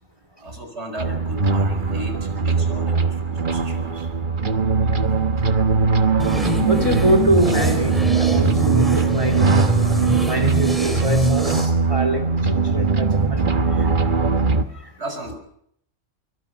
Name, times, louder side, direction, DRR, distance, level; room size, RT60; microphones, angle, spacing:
voice 1, 0.4-4.1 15.0-15.4, right 1 dB, 60° right, 5 dB, 6.5 m, -35 dB
sound 1, 1.0-14.6, right 4 dB, 40° right, 1.4 m, -20 dB
sound 2, 6.2-11.7, equal, ahead, 4.3 m, -24 dB
voice 2, 6.7-7.9 8.2-9.5 10.3-12.2 12.5-13.4, right 1 dB, 25° right, 7 dB, 2.7 m, -24 dB
24.5 x 24.0 x 6.0 m, 0.70 s
omnidirectional pair, 1.3 m